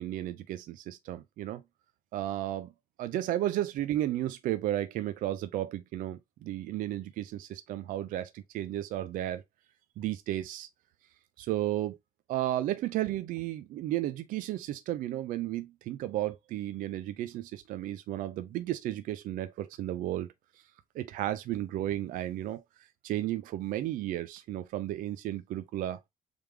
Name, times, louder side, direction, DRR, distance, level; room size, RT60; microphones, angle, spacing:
voice 1, 0.0-1.6 2.1-2.7 3.0-9.4 10.0-10.7 11.4-12.0 12.3-20.3 20.9-22.6 23.0-26.0, right 13 dB, 60° right, 0.4 m, -33 dB
3.5 x 3.3 x 3.2 m
cardioid pair, 170°, 16 cm